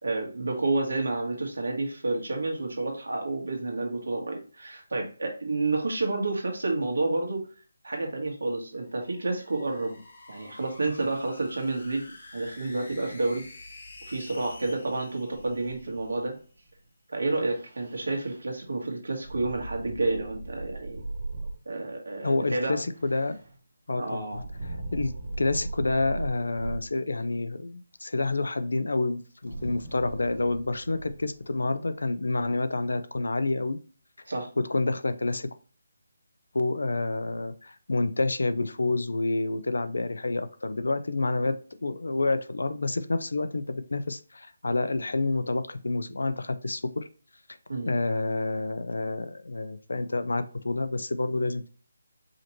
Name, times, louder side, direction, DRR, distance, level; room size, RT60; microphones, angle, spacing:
voice 1, 0.0-7.5 7.8-10.0 10.3-12.0 12.3-13.4 14.1-16.3 17.1-21.0 21.6-22.8 24.0-24.4 34.3-34.5 47.7-47.9, right 2 dB, 65° right, 2 dB, 1.4 m, -30 dB
sound 1, 8.8-16.2, left 2 dB, 35° left, 0.8 m, -49 dB
sound 2, 15.3-16.4 17.2-18.4 19.2-21.8 22.2-23.5 24.3-26.9 29.4-31.8, right 2 dB, 40° right, 0.9 m, -39 dB
voice 2, 22.2-23.4 23.9-24.4 24.9-25.1 25.4-33.8 34.6-35.5 36.5-41.5 41.8-47.1 47.9-51.7, left 2 dB, 75° left, 11 dB, 0.4 m, -28 dB
4.9 x 2.9 x 3.0 m, 0.40 s
hypercardioid pair, 180°, 0 cm